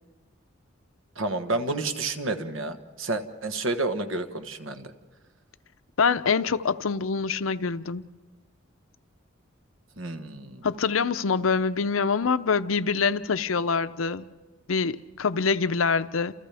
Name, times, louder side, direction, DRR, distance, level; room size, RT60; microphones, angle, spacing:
voice 1, 1.2-4.9 10.0-10.6, right 2 dB, 75° right, 1.3 m, -30 dB
voice 2, 6.0-8.0 10.6-14.3 14.7-16.3, left 5 dB, 85° left, 0.6 m, -25 dB
29.5 x 28.5 x 3.5 m
head